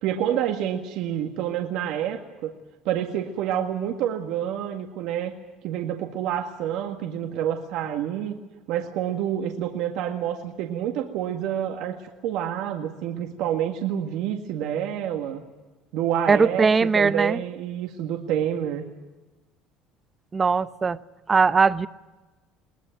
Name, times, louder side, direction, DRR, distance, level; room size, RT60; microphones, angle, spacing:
voice 1, 0.0-2.5 2.9-5.3 5.6-8.4 8.7-12.0 12.2-15.4 15.9-18.8, right 10 dB, 70° right, 3 dB, 1.9 m, -28 dB
voice 2, 16.3-17.4 20.3-21.0 21.3-21.9, right 5 dB, 25° right, 15 dB, 0.8 m, -20 dB
22.0 x 19.0 x 9.2 m, 1.2 s
cardioid pair, 120°, 0 cm